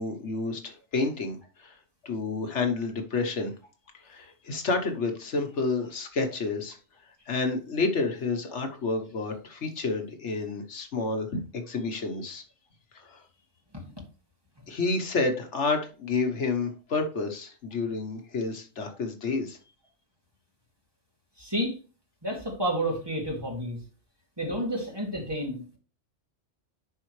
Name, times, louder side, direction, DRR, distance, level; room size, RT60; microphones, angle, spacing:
voice 1, 0.0-1.8 2.0-3.5 4.0-6.8 7.3-12.4 12.9-13.2 14.7-19.6, left 3 dB, 70° left, 5 dB, 1.4 m, -30 dB
voice 2, 21.4-21.8 22.2-23.8 24.4-25.8, right 1 dB, 20° right, -2 dB, 2.4 m, -30 dB
11.0 x 4.4 x 3.2 m, 0.35 s
omnidirectional pair, 1.2 m